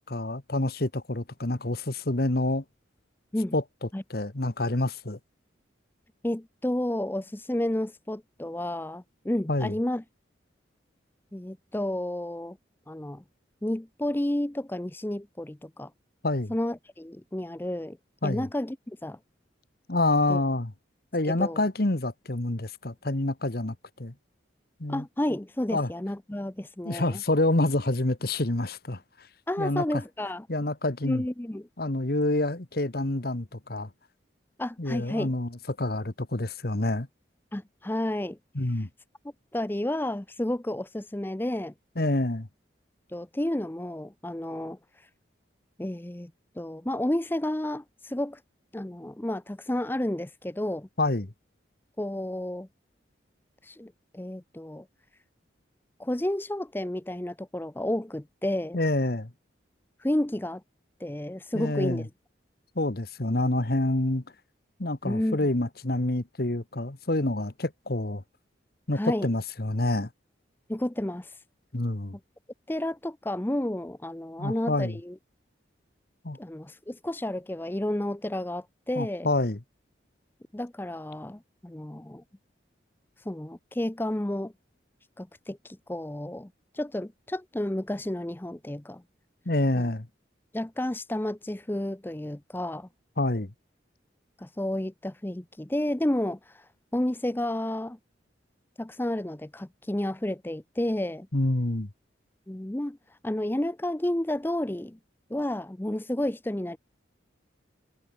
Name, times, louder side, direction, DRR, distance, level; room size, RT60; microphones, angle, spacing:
voice 1, 0.1-2.6 3.5-5.2 9.5-9.7 16.2-16.5 18.2-18.5 19.9-20.7 21.1-24.1 24.8-25.0 25.7-25.9 26.8-29.0 29.6-30.0 30.5-31.3 31.8-33.9 34.8-37.1 38.5-38.9 42.0-42.5 51.0-51.3 58.7-59.3 61.5-62.1 62.7-64.2 64.8-68.2 68.9-70.1 71.7-72.2 74.4-75.0 76.2-76.4 78.9-79.6 89.4-90.1 93.2-93.5 101.3-101.9, left 2 dB, 50° left, 1.4 m, -27 dB
voice 2, 6.2-10.0 11.3-12.6 12.9-13.2 13.6-15.9 16.5-18.0 18.2-19.2 20.3-20.4 21.4-21.6 24.9-27.2 29.5-30.5 31.1-31.7 34.6-35.3 37.5-38.4 38.8-38.9 39.5-41.7 43.1-45.1 45.8-46.3 46.6-48.4 48.7-50.9 52.0-52.7 53.6-54.9 56.0-58.8 60.0-60.6 61.0-62.1 65.0-65.4 68.9-69.3 70.7-71.4 72.7-75.2 76.4-79.3 80.5-82.2 83.2-84.5 85.2-89.0 89.8-89.9 90.5-92.9 94.4-98.0 98.8-101.3 102.5-105.0 105.3-106.8, left 1 dB, 10° left, 0.5 m, -31 dB
head